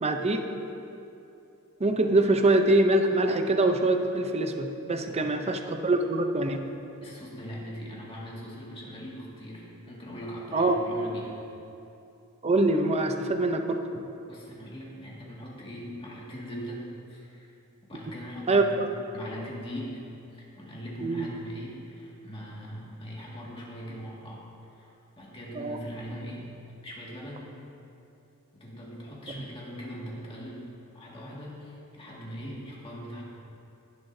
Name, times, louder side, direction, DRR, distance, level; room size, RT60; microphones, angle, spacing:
voice 1, 0.0-0.5 1.8-6.6 10.5-10.8 12.4-13.8 18.5-18.9 21.0-21.3 25.5-25.8, right 2 dB, 30° right, 6 dB, 0.6 m, -24 dB
voice 2, 5.0-5.4 7.0-11.4 14.3-17.5 17.9-18.9 19.1-26.5 26.8-27.6 28.5-30.6 30.9-33.2, equal, 25° left, -5 dB, 2.0 m, -41 dB
19.0 x 7.3 x 2.7 m, 2.8 s
head